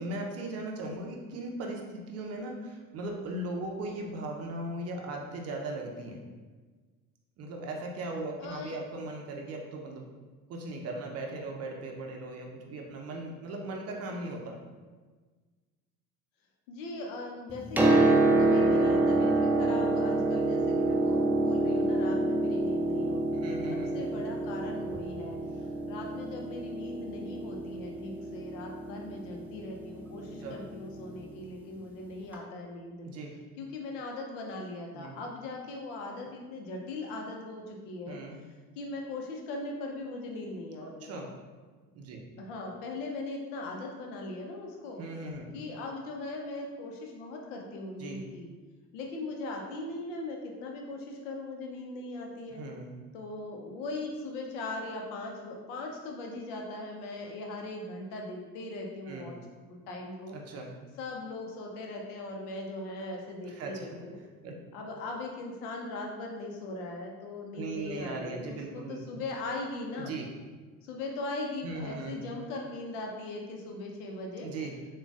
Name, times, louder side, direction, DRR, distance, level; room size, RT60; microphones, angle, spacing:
voice 1, 0.0-6.2 7.4-10.0 10.5-14.6 23.3-23.9 30.4-30.6 33.0-33.3 34.9-35.1 38.1-38.4 40.8-41.3 42.0-42.2 45.0-45.5 48.0-48.2 52.6-52.9 59.1-59.3 60.3-60.7 63.5-64.0 64.4-64.6 67.5-69.0 70.0-70.2 71.6-72.2 74.4-74.7, right 2 dB, 35° right, 1 dB, 0.7 m, -38 dB
voice 2, 8.4-8.8 16.7-33.1 33.6-38.2 38.8-41.2 42.4-45.0 45.5-48.5 48.9-52.6 53.1-59.4 59.7-60.3 61.0-64.2 64.7-70.1 70.8-74.5, left 2 dB, 55° left, 1 dB, 0.8 m, -39 dB
Piano, 17.5-31.2 32.3-32.4, right 2 dB, 5° right, 0.4 m, -27 dB
6.9 x 2.4 x 2.4 m, 1.4 s
figure-of-eight pair, 60°, 43 cm